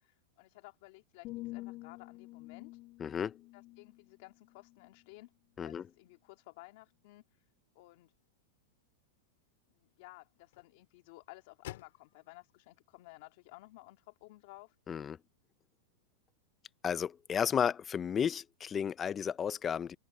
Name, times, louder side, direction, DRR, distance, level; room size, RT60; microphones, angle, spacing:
voice 1, 0.0-2.8 3.5-5.3 5.6-7.5 7.8-8.1 9.7-14.8, left 21 dB, 50° left, 2.0 m, -55 dB
sound 1, 1.2-5.1 5.6-5.9, left 19 dB, 35° left, 4.0 m, -48 dB
voice 2, 3.0-3.4 5.6-5.8 14.9-15.2 16.8-20.0, left 8 dB, 20° left, 0.6 m, -33 dB
sound 2, 8.1-14.3, left 15 dB, 65° left, 5.0 m, -57 dB
open air
supercardioid pair, 160°, 0 cm